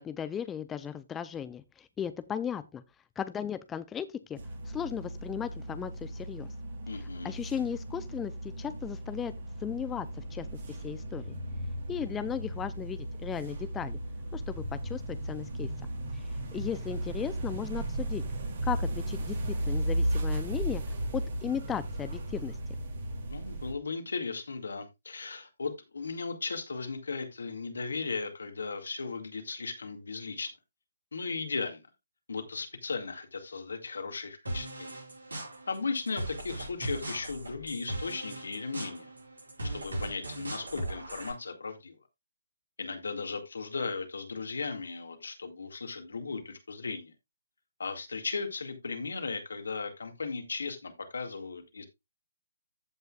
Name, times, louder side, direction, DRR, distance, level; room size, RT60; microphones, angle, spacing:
voice 1, 0.0-2.8 3.2-4.4 4.6-6.5 6.9-9.3 9.6-11.3 11.9-14.0 14.3-15.7 16.1-18.2 18.6-20.8 21.1-22.6, left 8 dB, 15° left, 0.4 m, -36 dB
sound 1, 4.4-23.7, right 1 dB, 50° right, 2.7 m, -35 dB
voice 2, 6.9-7.3 23.3-30.5 31.1-31.8 32.3-34.9 35.7-39.1 39.7-42.0 42.8-47.1 47.8-51.8, left 4 dB, 70° left, 2.1 m, -36 dB
sound 2, 34.5-41.3, right 1 dB, 80° right, 6.0 m, -39 dB
14.5 x 5.6 x 2.4 m
figure-of-eight pair, 135°, 0 cm